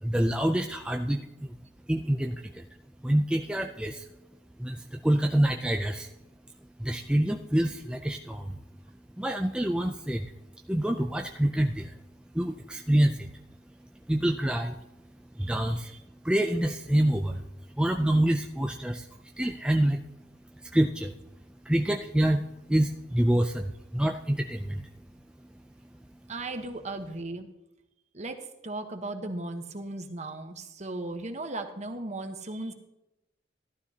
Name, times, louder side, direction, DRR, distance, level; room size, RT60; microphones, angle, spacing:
voice 1, 0.0-1.6 1.9-2.7 3.0-4.1 4.6-6.1 6.8-8.6 9.2-10.3 10.7-12.0 12.3-13.3 14.1-14.7 15.4-15.9 16.2-17.4 17.8-19.1 19.4-20.0 20.6-21.1 21.7-24.9, right 1 dB, 5° right, 3 dB, 0.4 m, -26 dB
voice 2, 15.4-15.9 26.3-27.5 28.1-32.7, right 2 dB, 40° right, 6 dB, 1.2 m, -37 dB
14.5 x 12.5 x 2.9 m, 0.92 s
head